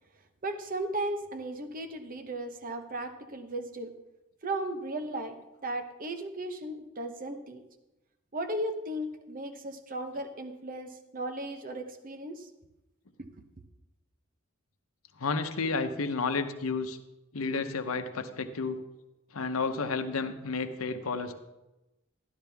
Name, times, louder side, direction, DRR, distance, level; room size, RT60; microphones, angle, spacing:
voice 1, 0.4-3.9 4.4-7.6 8.3-12.5 13.2-13.3, right 1 dB, 40° right, 8 dB, 0.9 m, -36 dB
voice 2, 15.2-17.0 17.3-18.8 19.3-21.3, left 4 dB, 75° left, 8 dB, 0.8 m, -31 dB
12.5 x 11.5 x 3.5 m, 1.0 s
head